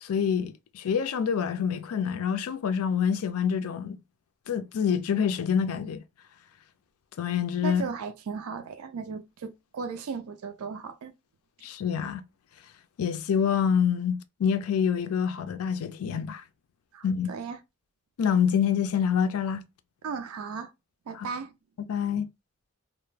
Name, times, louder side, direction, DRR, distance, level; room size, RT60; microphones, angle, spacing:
voice 1, 0.0-4.0 4.5-6.0 7.2-7.8 11.6-12.2 13.0-16.4 17.0-17.3 18.2-19.6 21.2-21.3 21.9-22.3, left 7 dB, 90° left, 0.4 m, -26 dB
voice 2, 7.6-11.1 16.9-17.6 20.0-20.7 21.1-21.5, right 5 dB, 85° right, 0.4 m, -36 dB
2.1 x 2.1 x 3.1 m
head